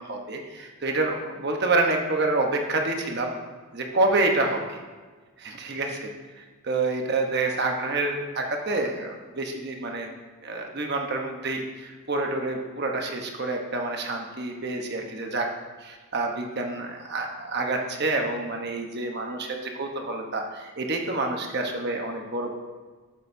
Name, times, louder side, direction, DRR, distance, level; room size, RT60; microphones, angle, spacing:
voice 1, 0.0-3.3 3.7-4.8 5.4-6.1 6.4-10.1 10.4-15.5 15.8-22.5, right 2 dB, 45° right, 2 dB, 1.0 m, -28 dB
13.0 x 6.6 x 2.7 m, 1.4 s
head